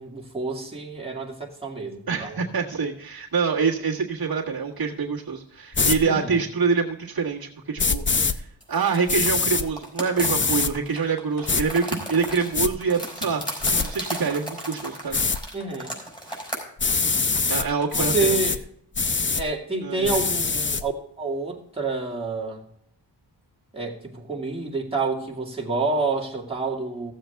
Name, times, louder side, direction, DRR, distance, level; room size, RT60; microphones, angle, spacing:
voice 1, 0.0-2.5 6.0-6.4 15.5-15.9 17.9-18.6 19.3-20.9 21.2-22.6 23.7-27.1, right 3 dB, 15° right, -3 dB, 2.2 m, -28 dB
voice 2, 2.1-8.0 8.3-15.2 17.5-18.4 19.8-20.2, right 5 dB, 60° right, -4 dB, 1.7 m, -26 dB
sound 1, 5.7-6.0 7.8-8.3 9.1-9.6 10.2-10.7 11.5-11.6 12.2-12.7 13.6-13.9 15.1-15.4 16.8-17.7 17.9-18.6 18.9-19.4 20.0-20.8, left 4 dB, 30° left, 0.6 m, -23 dB
sound 2, 8.6-11.0 11.3-16.6, right 1 dB, 10° left, 4.7 m, -35 dB
sound 3, 9.3-9.7 10.0-10.1 10.5-11.5 12.0-12.1 12.4-12.7 13.1-13.2 13.6-14.6 15.2-15.3 15.6-15.9 16.3-16.4 16.9-18.0, left 2 dB, 70° left, 1.9 m, -46 dB
15.0 x 7.6 x 3.5 m, 0.71 s
wide cardioid pair, 90°, 41 cm